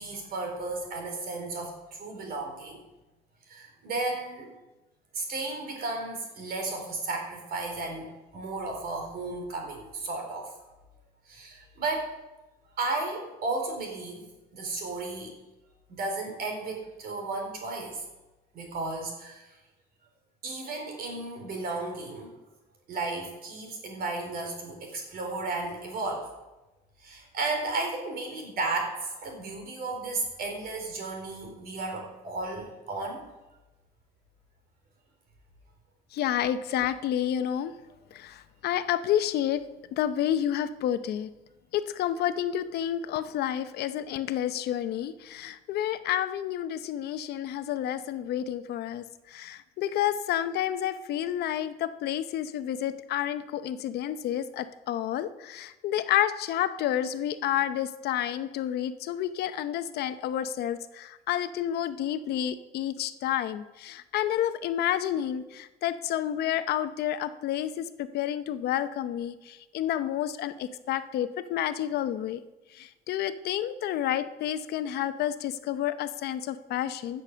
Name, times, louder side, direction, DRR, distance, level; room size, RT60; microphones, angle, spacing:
voice 1, 0.0-2.8 3.5-4.5 5.1-10.5 11.3-12.1 12.8-15.3 15.9-18.0 18.5-19.4 20.4-22.3 22.9-26.3 27.0-33.2, right 3 dB, 65° right, 2 dB, 4.1 m, -34 dB
voice 2, 36.1-37.7 38.1-39.6 39.9-41.3 41.7-49.0 49.3-72.4 72.8-77.2, left 11 dB, 70° left, 11 dB, 0.8 m, -30 dB
15.5 x 6.7 x 6.8 m, 1.1 s
cardioid pair, 110°, 17 cm